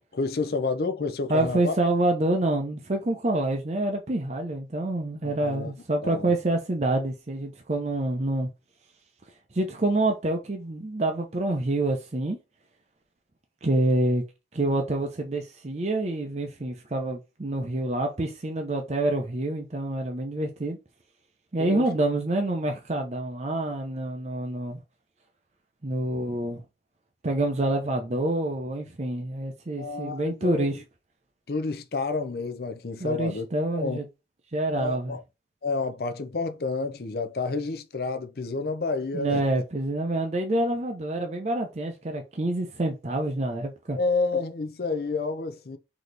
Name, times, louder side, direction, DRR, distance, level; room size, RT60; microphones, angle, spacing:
voice 1, 0.1-1.7 5.2-5.7 6.0-6.3 21.6-21.9 29.8-30.8 31.5-33.5 33.7-34.0 34.7-35.2 35.6-39.4 43.9-45.8, left 3 dB, 60° left, 0.5 m, -29 dB
voice 2, 1.3-8.5 9.5-12.4 13.6-14.2 14.5-20.8 21.5-24.8 25.8-26.6 27.2-30.8 33.0-34.1 34.5-35.2 39.1-44.0, right 1 dB, 40° right, 0.6 m, -27 dB
4.1 x 2.9 x 3.3 m
head